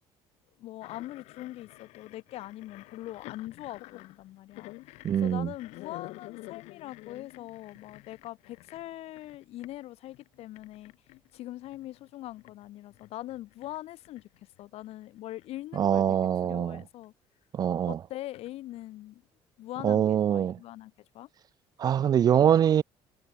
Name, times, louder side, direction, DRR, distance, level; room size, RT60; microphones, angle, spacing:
voice 1, 0.6-10.9 11.3-14.3 14.6-17.1 17.9-19.2 19.6-21.3, left 15 dB, 65° left, 3.1 m, -42 dB
sound 1, 0.8-9.8 10.1-15.6 15.9-16.4 17.0-17.1 18.3-18.8, left 20 dB, 85° left, 2.5 m, -49 dB
voice 2, 5.0-5.5 15.8-16.8 17.5-18.0 19.8-20.6 21.8-22.8, right 9 dB, 35° right, 0.4 m, -24 dB
cardioid pair, 140°, 11 cm